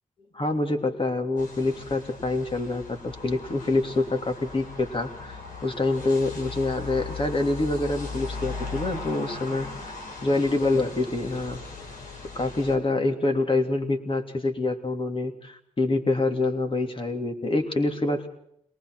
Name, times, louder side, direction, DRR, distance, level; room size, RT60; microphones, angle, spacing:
voice 1, 0.3-9.9 10.2-11.6 12.3-18.3, left 2 dB, 40° left, 5 dB, 3.1 m, -26 dB
sound 1, 1.4-12.8, left 4 dB, 90° left, 4.1 m, -38 dB
22.5 x 19.0 x 6.3 m, 0.72 s
cardioid pair, 65°, 14 cm